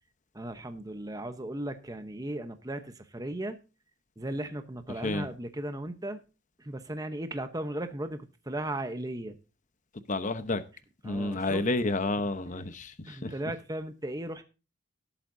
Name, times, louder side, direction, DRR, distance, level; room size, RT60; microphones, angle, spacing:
voice 1, 0.3-3.6 4.2-6.2 6.6-9.4 11.0-11.7 13.1-14.4, right 1 dB, 20° right, 0.9 m, -36 dB
voice 2, 10.1-10.6 11.0-12.9 13.2-13.3, left 2 dB, 40° left, 0.9 m, -29 dB
18.0 x 8.5 x 2.7 m
head